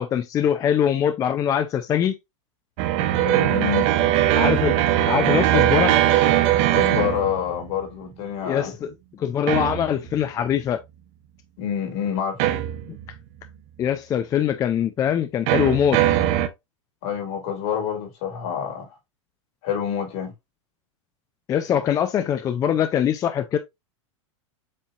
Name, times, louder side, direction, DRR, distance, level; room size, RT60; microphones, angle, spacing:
voice 1, 0.0-2.2 4.3-4.8 5.1-6.0 8.5-10.8 13.8-16.0 21.5-23.6, left 9 dB, 20° left, 0.4 m, -22 dB
sound 1, 2.8-7.8 9.5-10.2 12.4-13.2 15.5-16.5, right 13 dB, 45° right, 0.7 m, -20 dB
voice 2, 3.2-3.9 6.7-8.9 11.6-12.4 17.0-18.9 19.6-20.3, left 8 dB, 55° left, 2.4 m, -27 dB
7.4 x 2.7 x 2.4 m
supercardioid pair, 135°, 16 cm